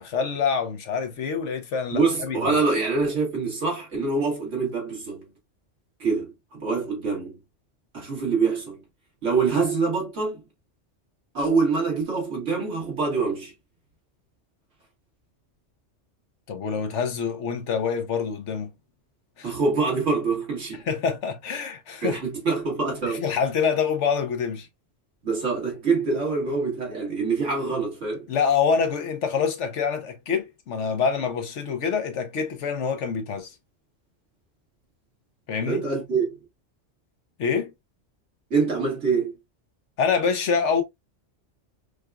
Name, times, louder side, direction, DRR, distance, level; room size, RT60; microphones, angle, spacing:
voice 1, 0.0-2.5 16.5-18.7 19.4-19.5 20.9-22.2 23.0-24.7 28.3-33.5 35.5-35.8 37.4-37.7 40.0-40.8, left 6 dB, 80° left, 1.2 m, -26 dB
voice 2, 1.9-5.2 6.0-7.4 7.9-8.8 9.2-10.4 11.3-13.5 19.4-20.9 22.0-23.3 25.2-28.3 35.7-36.3 38.5-39.3, right 4 dB, 90° right, 2.1 m, -25 dB
4.9 x 2.3 x 2.3 m
omnidirectional pair, 1.2 m